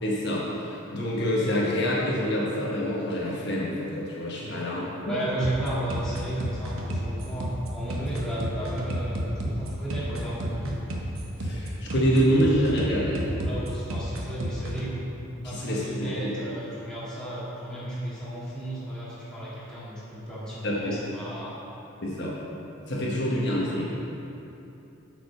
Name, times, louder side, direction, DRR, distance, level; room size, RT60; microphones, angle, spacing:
voice 1, 0.0-5.1 11.4-13.2 15.4-16.3 20.6-21.0 22.0-22.3 22.9-23.9, equal, 55° left, -5 dB, 1.1 m, -26 dB
voice 2, 5.0-10.8 13.4-15.1 15.4-21.6, right 1 dB, 5° left, -10 dB, 1.9 m, -33 dB
sound 1, 5.4-14.8, equal, 80° right, 1.0 m, -32 dB
7.8 x 5.2 x 5.5 m, 2.9 s
head